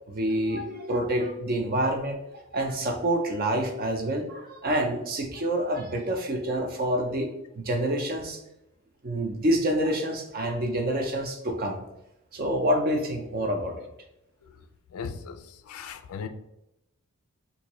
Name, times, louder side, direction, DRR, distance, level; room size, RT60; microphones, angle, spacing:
voice 1, 0.1-7.3 7.5-8.4 9.0-11.8 12.3-13.9, right 1 dB, 40° right, 4 dB, 0.5 m, -27 dB
voice 2, 14.9-16.3, left 6 dB, 80° left, 10 dB, 0.3 m, -38 dB
3.6 x 2.6 x 3.0 m, 0.85 s
head